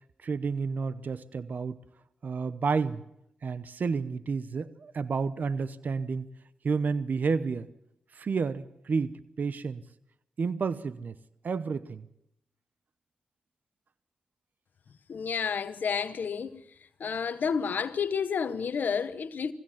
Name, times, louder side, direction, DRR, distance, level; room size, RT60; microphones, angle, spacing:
voice 1, 0.2-1.8 2.2-3.0 3.4-6.3 6.6-7.7 8.1-9.8 10.4-11.1 11.4-12.1, right 5 dB, 65° right, 0.8 m, -30 dB
voice 2, 15.1-16.6 17.0-19.5, left 6 dB, 70° left, 0.9 m, -30 dB
22.5 x 16.0 x 7.3 m
supercardioid pair, 40°, 3 cm